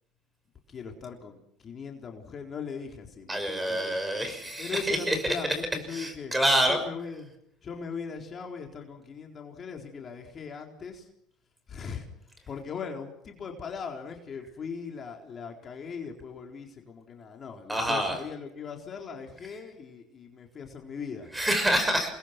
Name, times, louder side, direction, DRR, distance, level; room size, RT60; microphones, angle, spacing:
voice 1, 0.7-4.0 4.6-6.3 6.7-7.3 7.6-11.1 11.7-12.1 12.5-21.3, left 5 dB, 40° left, 2 dB, 4.0 m, -39 dB
voice 2, 3.3-5.2 5.5-5.6 5.9-6.8 17.7-18.2 21.3-22.1, right 1 dB, 10° right, 8 dB, 6.0 m, -27 dB
28.0 x 21.0 x 6.1 m, 0.72 s
hypercardioid pair, 80°, 0 cm